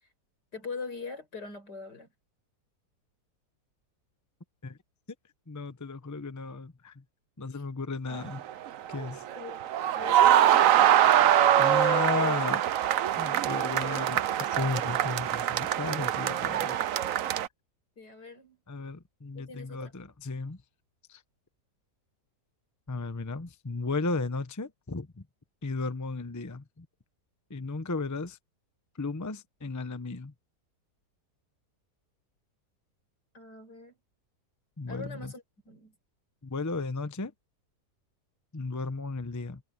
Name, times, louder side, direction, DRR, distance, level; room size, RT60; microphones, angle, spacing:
voice 1, 0.5-2.1 7.5-7.6 9.3-10.8 13.9-14.0 18.0-18.6 19.3-19.9 33.3-34.0 34.9-35.9, left 3 dB, 80° left, 6.5 m, -42 dB
voice 2, 5.5-7.0 7.4-8.4 8.9-9.2 11.6-12.7 13.2-16.8 17.0-17.1 18.7-20.6 21.1-21.2 22.9-25.2 25.6-26.9 27.5-28.4 28.9-30.3 34.8-35.3 36.4-37.3 38.5-39.6, left 3 dB, 15° left, 0.7 m, -34 dB
sound 1, 8.1-17.5, right 11 dB, 60° right, 1.0 m, -24 dB
omnidirectional pair, 1.8 m